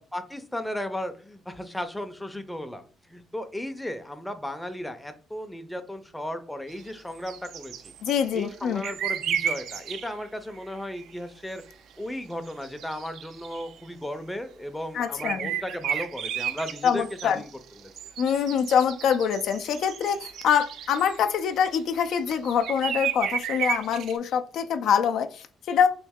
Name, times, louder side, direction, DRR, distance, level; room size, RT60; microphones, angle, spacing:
voice 1, 0.0-7.7 8.3-11.6 12.0-17.5 17.8-17.9, left 1 dB, 5° left, 8 dB, 0.5 m, -35 dB
sound 1, 6.7-10.2 10.6-11.0 11.6-11.7 12.5-13.8 15.2-21.3 21.8-24.2, right 8 dB, 80° right, 0.4 m, -33 dB
voice 2, 8.0-8.9 14.9-15.5 16.8-17.4 18.2-25.9, left 7 dB, 75° left, 8 dB, 0.3 m, -25 dB
3.1 x 2.8 x 3.5 m, 0.42 s
cardioid pair, 90°, 0 cm